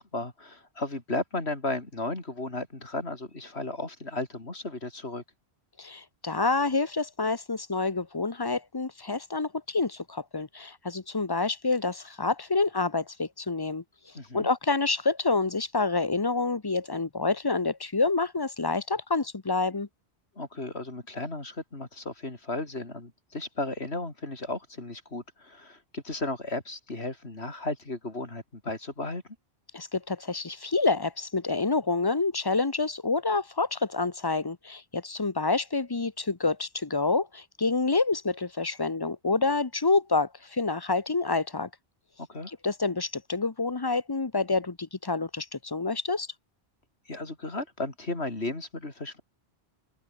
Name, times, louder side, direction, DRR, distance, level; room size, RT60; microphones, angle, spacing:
voice 1, 0.0-5.2 14.1-14.5 20.4-29.2 42.3-42.5 47.1-49.2, left 2 dB, 85° left, 4.4 m, -34 dB
voice 2, 5.8-13.8 14.3-19.9 29.7-41.7 42.6-46.3, left 3 dB, 25° left, 0.9 m, -28 dB
open air
omnidirectional pair, 1.1 m